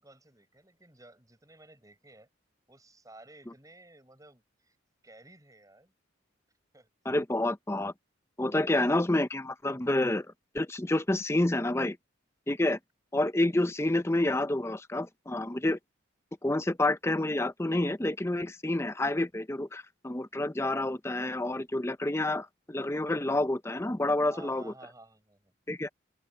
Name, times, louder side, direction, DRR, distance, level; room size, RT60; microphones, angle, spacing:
voice 1, 0.0-2.3 2.7-4.8 5.0-5.9 6.7-6.9 8.4-8.9 24.3-25.5, right 2 dB, 15° right, 6.9 m, -54 dB
voice 2, 7.1-7.9 8.4-10.3 10.5-12.0 12.5-12.8 13.1-15.8 16.4-24.7 25.7-25.9, left 1 dB, 15° left, 0.6 m, -28 dB
open air
head